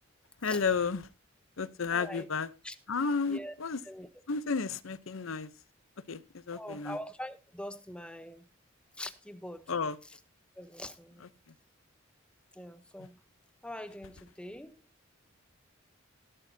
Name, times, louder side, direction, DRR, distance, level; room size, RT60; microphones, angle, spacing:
voice 1, 0.4-1.0 1.6-2.5 2.9-3.8 4.3-5.5 6.1-6.2 6.5-7.0 9.7-10.0, left 5 dB, 70° left, 0.8 m, -32 dB
voice 2, 1.9-2.3 2.6-2.7 3.3-3.5 3.8-4.1 6.5-8.4 9.0-9.6 10.0-10.2 10.6-11.3 12.5-13.2 13.6-14.8, left 1 dB, 5° left, 0.8 m, -43 dB
16.5 x 11.0 x 2.7 m
head